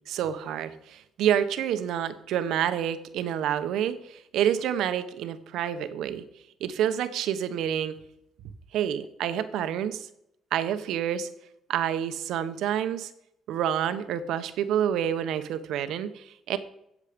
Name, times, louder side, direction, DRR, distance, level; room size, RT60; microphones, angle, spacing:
voice 1, 0.1-6.2 6.6-8.0 8.7-10.1 10.5-11.3 11.7-13.1 13.5-16.6, right 9 dB, 80° right, 11 dB, 1.0 m, -28 dB
16.5 x 7.3 x 5.2 m, 0.78 s
cardioid pair, 135°, 0 cm